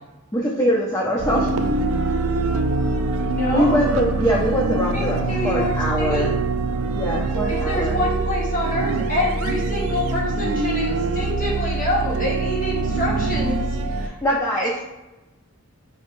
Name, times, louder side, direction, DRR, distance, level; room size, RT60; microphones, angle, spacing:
voice 1, 0.3-1.5 3.5-5.2 5.4-6.3 6.9-8.0 14.0-14.7, equal, 15° left, -3 dB, 0.4 m, -22 dB
sound 1, 1.2-14.1, right 3 dB, 75° right, 0.4 m, -24 dB
voice 2, 3.3-3.9 4.9-6.4 7.5-13.6 14.6-14.8, left 2 dB, 35° left, -4 dB, 1.2 m, -26 dB
5.2 x 3.3 x 2.5 m, 1.1 s
head